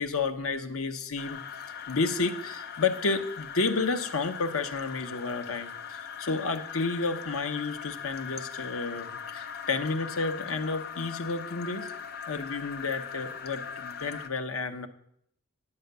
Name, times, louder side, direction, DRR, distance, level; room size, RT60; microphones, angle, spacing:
voice 1, 0.0-1.4 1.7-11.9 12.3-14.9, left 4 dB, 85° left, 7 dB, 1.0 m, -31 dB
sound 1, 1.2-14.3, left 7 dB, 50° left, 0.6 m, -40 dB
11.0 x 5.7 x 8.0 m, 0.70 s
head